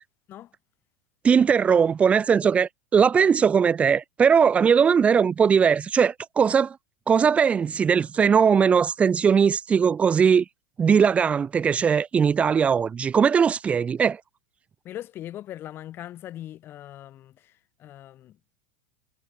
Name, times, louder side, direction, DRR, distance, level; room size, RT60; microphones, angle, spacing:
voice 1, 1.2-6.8 7.1-10.4 10.8-14.2, right 6 dB, 15° right, 1.0 m, -20 dB
voice 2, 14.8-17.5 17.8-18.4, left 12 dB, 30° left, 2.2 m, -40 dB
supercardioid pair, 150°, 7 cm